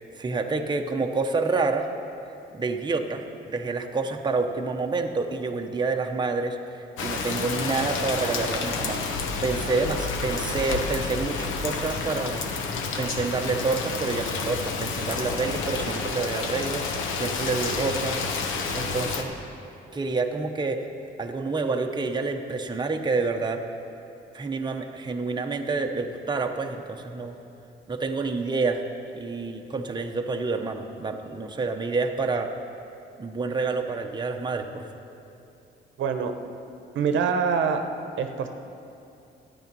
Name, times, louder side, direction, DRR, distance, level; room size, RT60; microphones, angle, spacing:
voice 1, 0.0-1.9 2.5-9.0 9.4-12.4 12.7-18.3 18.7-19.3 19.9-20.9 21.2-23.6 24.3-27.3 27.9-28.8 29.1-32.5 33.2-34.9, right 3 dB, 20° right, 3 dB, 0.8 m, -28 dB
Rain, 7.0-19.2, left 4 dB, 80° left, 1.1 m, -30 dB
voice 2, 36.0-36.3 36.9-37.8 38.2-38.5, right 6 dB, 75° right, 7 dB, 0.9 m, -24 dB
12.5 x 9.2 x 5.4 m, 2.7 s
cardioid pair, 90°, 20 cm